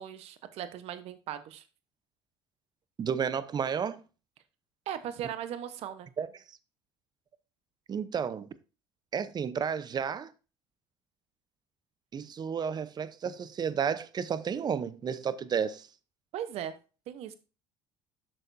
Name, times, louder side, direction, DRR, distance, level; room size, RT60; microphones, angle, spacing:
voice 1, 0.0-1.6 4.9-6.1 16.3-16.7 17.1-17.3, right 10 dB, 65° right, 1.0 m, -38 dB
voice 2, 3.0-4.0 6.2-6.3 7.9-8.5 9.1-10.3 12.1-15.9, right 7 dB, 40° right, 0.7 m, -32 dB
8.8 x 6.6 x 2.7 m
supercardioid pair, 75°, 11 cm